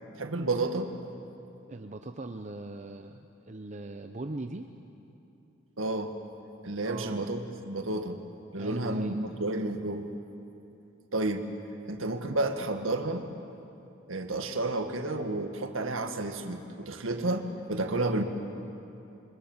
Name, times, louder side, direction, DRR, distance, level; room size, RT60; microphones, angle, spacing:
voice 1, 0.1-1.0 5.8-6.2 6.6-8.2 8.5-10.1 11.1-11.5 11.9-13.3 14.1-18.2, right 2 dB, 85° right, 6 dB, 1.8 m, -31 dB
voice 2, 1.7-4.7 6.9-7.3 8.5-9.2, right 2 dB, 35° right, 6 dB, 0.8 m, -40 dB
29.0 x 24.5 x 7.3 m, 2.8 s
head